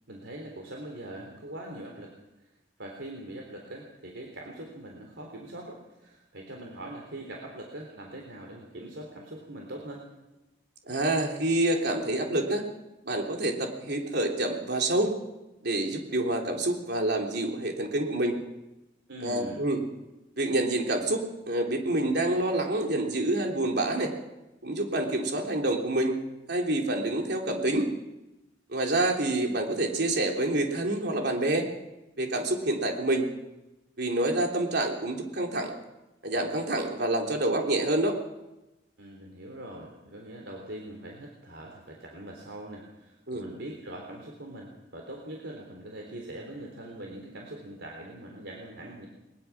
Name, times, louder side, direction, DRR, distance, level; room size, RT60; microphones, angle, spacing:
voice 1, 0.1-2.1 2.8-10.0 19.1-19.6 39.0-49.1, right 1 dB, 80° right, 1 dB, 3.8 m, -42 dB
voice 2, 10.9-12.6 13.0-15.1 15.6-18.4 19.2-19.8 20.4-24.1 24.6-26.2 26.5-27.9 28.7-31.7 32.2-33.3 34.0-35.7 36.2-38.2 43.3-43.4, right 1 dB, 65° right, 1 dB, 3.6 m, -27 dB
21.5 x 21.5 x 6.1 m, 0.97 s
head